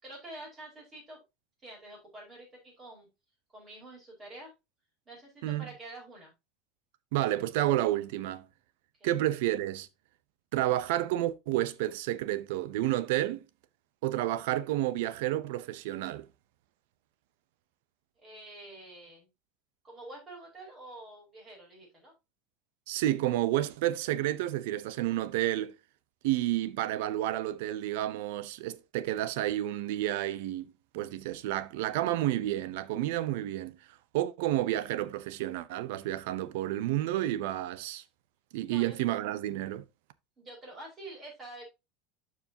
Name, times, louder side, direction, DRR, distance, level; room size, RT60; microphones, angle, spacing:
voice 1, 0.0-1.2 1.6-3.1 3.5-4.5 5.0-6.3 9.0-9.1 18.2-19.3 19.8-22.1 38.6-39.0 40.4-41.6, right 2 dB, 15° right, 4.9 m, -47 dB
voice 2, 7.1-8.4 9.0-9.9 10.5-13.4 14.0-16.3 22.9-25.7 26.2-30.7 30.9-33.8 34.1-38.0 38.5-39.8, right 14 dB, 65° right, 0.7 m, -30 dB
12.5 x 4.8 x 2.8 m
supercardioid pair, 175°, 0 cm